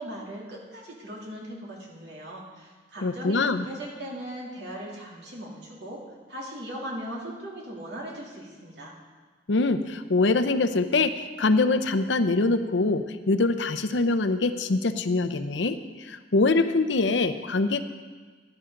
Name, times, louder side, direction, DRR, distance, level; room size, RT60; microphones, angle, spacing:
voice 1, 0.0-6.0 6.3-8.9, right 1 dB, 65° right, -3 dB, 2.9 m, -39 dB
voice 2, 3.0-3.7 9.5-17.8, left 3 dB, 80° left, 10 dB, 0.7 m, -24 dB
16.0 x 10.5 x 3.8 m, 1.4 s
head